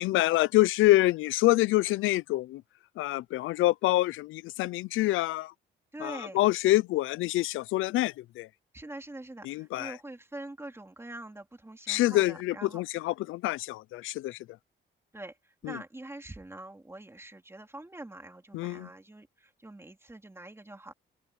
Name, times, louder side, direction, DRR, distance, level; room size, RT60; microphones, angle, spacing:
voice 1, 0.0-2.6 3.0-5.5 6.0-8.5 9.5-9.9 11.9-14.4 15.6-15.8 18.5-18.9, left 17 dB, 85° left, 0.6 m, -26 dB
voice 2, 5.9-6.4 8.7-13.1 15.1-20.9, right 2 dB, 10° right, 3.0 m, -44 dB
open air
cardioid pair, 90°, 20 cm